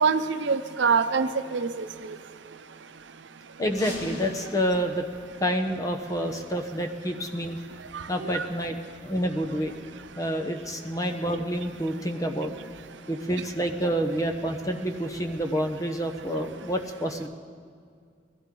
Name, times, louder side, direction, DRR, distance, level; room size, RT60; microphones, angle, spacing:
voice 1, 0.0-2.2 7.9-8.5, right 5 dB, 85° right, 9 dB, 0.7 m, -25 dB
sound 1, 3.6-6.3, equal, 85° left, 4.5 m, -42 dB
voice 2, 3.6-5.0 5.4-7.6 8.1-9.7 10.2-12.5 13.1-17.3, equal, 20° left, 4 dB, 1.0 m, -28 dB
21.5 x 15.5 x 3.9 m, 2.1 s
head